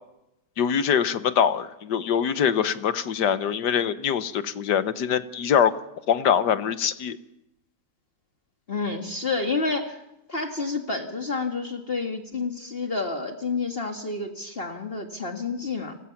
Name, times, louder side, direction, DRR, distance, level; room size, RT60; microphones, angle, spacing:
voice 1, 0.6-5.7 6.1-7.2, left 8 dB, 70° left, 13 dB, 1.6 m, -23 dB
voice 2, 8.7-10.0 10.3-16.0, left 3 dB, 35° left, 4 dB, 1.8 m, -29 dB
30.0 x 20.0 x 5.9 m, 0.91 s
omnidirectional pair, 2.0 m